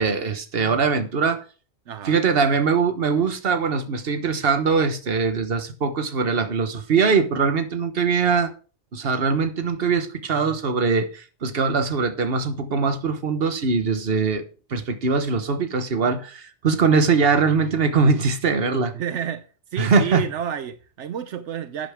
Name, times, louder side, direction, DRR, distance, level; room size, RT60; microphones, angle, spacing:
voice 1, 0.0-1.4 2.0-8.5 8.9-14.4 14.7-18.9 19.8-20.2, right 5 dB, 55° right, 1.4 m, -22 dB
voice 2, 1.9-2.2 18.9-19.4 19.7-21.9, right 8 dB, 85° right, 1.1 m, -30 dB
12.0 x 9.1 x 3.6 m
omnidirectional pair, 1.2 m